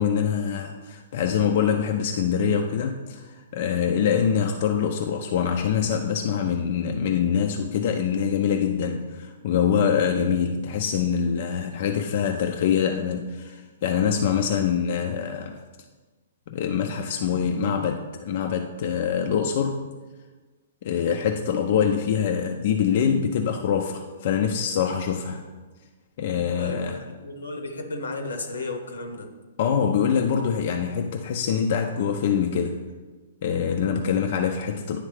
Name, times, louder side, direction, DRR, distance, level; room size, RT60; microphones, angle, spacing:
voice 1, 0.0-15.6 16.5-19.8 20.8-25.5 26.2-27.0 29.6-32.8 33.4-35.0, left 7 dB, 55° left, 4 dB, 0.4 m, -24 dB
voice 2, 26.6-29.3, left 2 dB, 85° left, 6 dB, 0.9 m, -34 dB
9.6 x 3.3 x 3.2 m, 1.3 s
hypercardioid pair, 130°, 0 cm